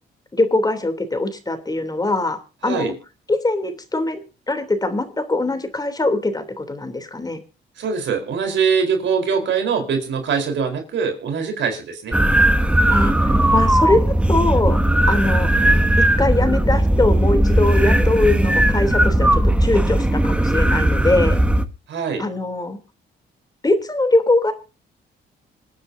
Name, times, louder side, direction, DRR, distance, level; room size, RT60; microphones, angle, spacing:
voice 1, 0.3-2.9 3.3-7.4 12.9-14.8 15.1-15.5 16.0-21.4 22.2-22.8 23.6-24.5, left 2 dB, 20° left, 7 dB, 3.1 m, -22 dB
voice 2, 2.6-2.9 7.8-12.2 21.9-22.2, right 6 dB, 70° right, 5 dB, 4.1 m, -22 dB
sound 1, 12.1-21.7, right 1 dB, 5° right, 1.2 m, -17 dB
26.5 x 9.9 x 2.7 m, 0.32 s
cardioid pair, 90°, 20 cm